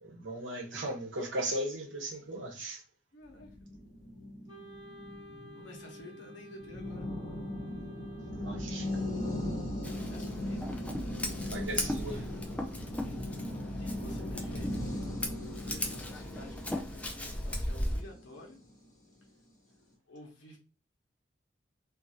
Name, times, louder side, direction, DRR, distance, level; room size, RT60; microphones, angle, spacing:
voice 1, 0.0-2.8 8.3-9.1 11.5-12.2, right 1 dB, 85° right, 1.0 m, -37 dB
voice 2, 3.1-3.7 5.5-7.1 10.1-11.3 11.8-12.3 13.1-13.2 13.8-14.9 15.5-18.6 20.1-20.6, left 1 dB, 90° left, 1.0 m, -51 dB
sound 1, 3.4-18.8, left 1 dB, 40° left, 1.2 m, -39 dB
Wind instrument woodwind instrument, 4.5-9.6, right 1 dB, 25° right, 0.9 m, -52 dB
Scissors, 9.8-18.0, left 1 dB, 5° left, 0.3 m, -38 dB
2.7 x 2.5 x 2.7 m
head